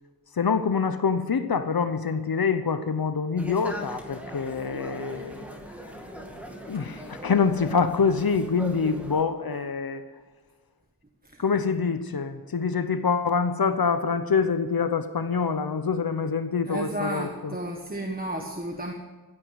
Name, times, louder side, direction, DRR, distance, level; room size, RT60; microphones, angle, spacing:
voice 1, 0.4-5.4 6.7-10.0 11.4-17.5, left 5 dB, 75° left, 10 dB, 0.9 m, -25 dB
sound 1, 3.4-9.2, equal, 5° right, 2.3 m, -39 dB
voice 2, 16.6-18.9, right 1 dB, 25° right, 2 dB, 1.4 m, -33 dB
15.5 x 9.6 x 8.0 m, 1.2 s
wide cardioid pair, 70°, 37 cm